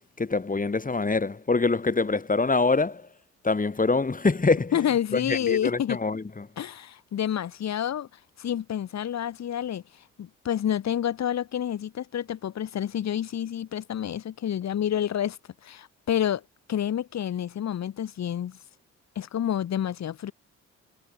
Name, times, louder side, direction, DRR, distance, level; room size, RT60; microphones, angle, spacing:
voice 1, 0.2-3.1 3.4-4.7 5.1-6.5, left 3 dB, 25° left, 2.0 m, -25 dB
voice 2, 4.7-6.0 6.6-8.1 8.4-9.8 10.2-15.4 15.6-16.4 16.7-18.6 19.2-20.3, left 10 dB, 50° left, 1.1 m, -28 dB
hypercardioid pair, 55°, 35 cm